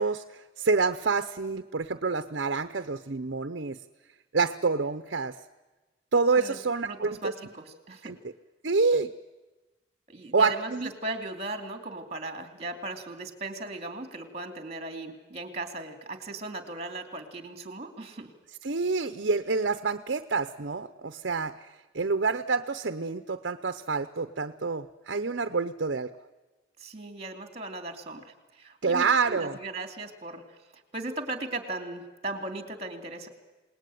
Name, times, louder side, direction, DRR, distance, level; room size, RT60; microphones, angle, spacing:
voice 1, 0.0-3.8 4.3-5.3 6.1-7.3 8.0-8.2 8.6-9.1 10.3-10.9 18.6-21.6 21.9-26.1 28.8-29.6, right 4 dB, 65° right, 10 dB, 0.7 m, -27 dB
voice 2, 6.8-8.1 10.1-18.3 26.8-33.3, right 2 dB, 30° right, 6 dB, 2.8 m, -38 dB
27.5 x 19.5 x 9.3 m, 1.2 s
head